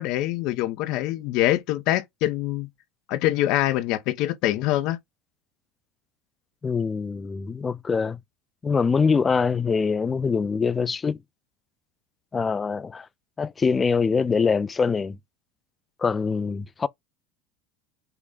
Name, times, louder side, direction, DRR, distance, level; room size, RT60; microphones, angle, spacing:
voice 1, 0.0-2.7 3.1-5.0, left 15 dB, 60° left, 0.6 m, -24 dB
voice 2, 6.6-8.2 8.6-11.2 12.3-13.1 13.4-15.2 16.0-16.9, left 5 dB, 20° left, 0.3 m, -24 dB
5.8 x 2.1 x 3.8 m
supercardioid pair, 125°, 0 cm